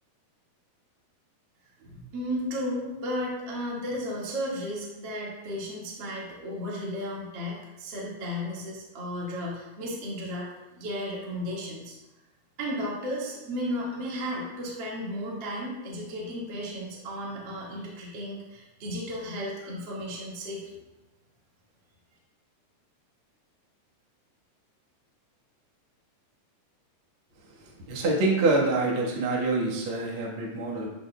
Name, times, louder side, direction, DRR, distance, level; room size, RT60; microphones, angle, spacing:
voice 1, 1.8-10.5 10.7-11.9 12.6-20.6, equal, 50° right, -5 dB, 1.4 m, -34 dB
voice 2, 27.6-30.9, right 2 dB, 85° right, -3 dB, 1.1 m, -26 dB
12.5 x 5.1 x 2.2 m, 1.0 s
omnidirectional pair, 4.6 m